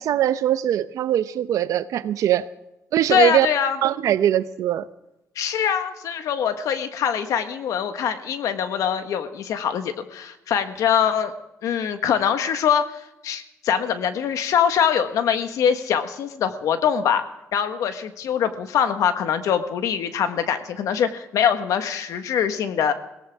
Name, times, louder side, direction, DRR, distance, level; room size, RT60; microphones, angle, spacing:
voice 1, 0.0-2.5 2.9-3.5 3.8-4.9, right 11 dB, 75° right, 14 dB, 0.8 m, -21 dB
voice 2, 3.1-3.8 5.3-11.3 11.6-17.2 17.5-22.9, left 8 dB, 75° left, 8 dB, 1.5 m, -23 dB
21.5 x 17.5 x 3.6 m, 0.93 s
cardioid pair, 100°, 6 cm